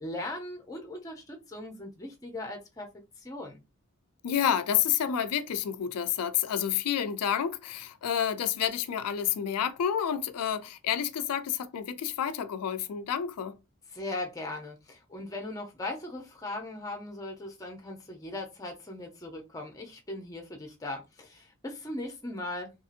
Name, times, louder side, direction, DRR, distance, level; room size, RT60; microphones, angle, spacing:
voice 1, 0.0-2.9 3.2-3.6 13.9-22.7, left 2 dB, 15° left, 0.5 m, -39 dB
voice 2, 4.2-13.6, left 9 dB, 90° left, 0.4 m, -29 dB
2.9 x 2.6 x 2.5 m
head